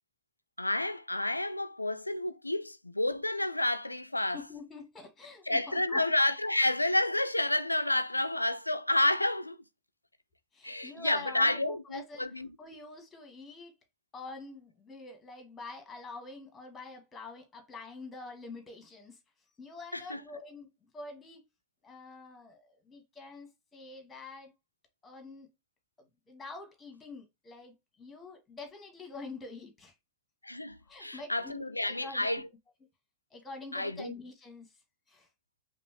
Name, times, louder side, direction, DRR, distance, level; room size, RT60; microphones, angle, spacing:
voice 1, 0.6-4.4 5.5-9.6 10.6-12.5 19.9-20.2 30.4-32.5 33.7-34.1, left 1 dB, 85° left, 0.4 m, -30 dB
voice 2, 4.1-6.0 10.5-13.7 14.1-19.2 19.6-21.4 21.8-24.5 25.0-25.5 26.3-29.9 30.8-32.3 33.3-34.7 35.1-35.3, left 3 dB, 15° left, 1.5 m, -46 dB
5.3 x 2.5 x 2.9 m
figure-of-eight pair, 90°, 0 cm